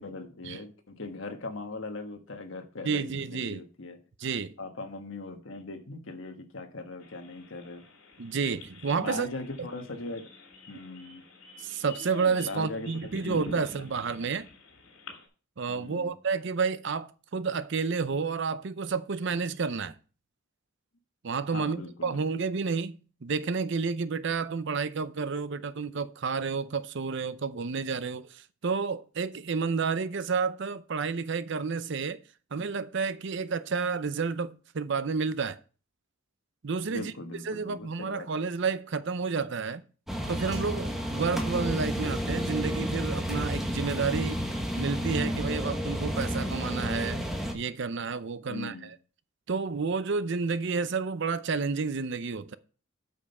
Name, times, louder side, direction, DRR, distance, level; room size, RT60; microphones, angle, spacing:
voice 1, 0.0-4.0 4.6-7.8 9.0-10.3 10.7-11.2 12.4-13.9 15.7-16.1 21.5-22.2 25.6-25.7 36.9-38.3 39.7-39.8 48.5-48.9, left 3 dB, 70° left, 1.3 m, -40 dB
voice 2, 2.8-3.6 4.2-4.5 8.2-9.3 11.6-14.5 15.6-20.0 21.2-32.2 32.5-35.6 36.6-37.1 37.5-39.8 40.3-44.4 44.7-47.2 47.5-48.9 49.5-52.6, right 5 dB, 60° right, 0.6 m, -30 dB
sound 1, 7.0-15.3, left 2 dB, 85° left, 2.7 m, -47 dB
sound 2, 40.1-47.5, equal, ahead, 1.2 m, -31 dB
8.5 x 5.4 x 5.4 m
head